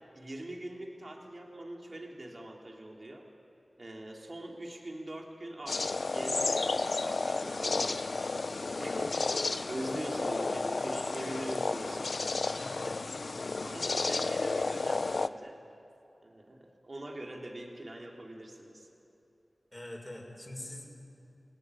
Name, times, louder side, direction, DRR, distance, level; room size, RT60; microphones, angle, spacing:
voice 1, 0.1-3.3 3.8-8.5 8.8-12.6 12.8-13.0 13.6-15.6 16.2-18.9, right 1 dB, 50° right, 0 dB, 3.5 m, -43 dB
sound 1, 5.7-15.3, left 3 dB, 70° left, 0.7 m, -32 dB
voice 2, 12.5-13.2 19.7-20.9, left 1 dB, 20° left, 1 dB, 6.0 m, -45 dB
29.5 x 18.0 x 9.9 m, 2.7 s
cardioid pair, 45°, 0 cm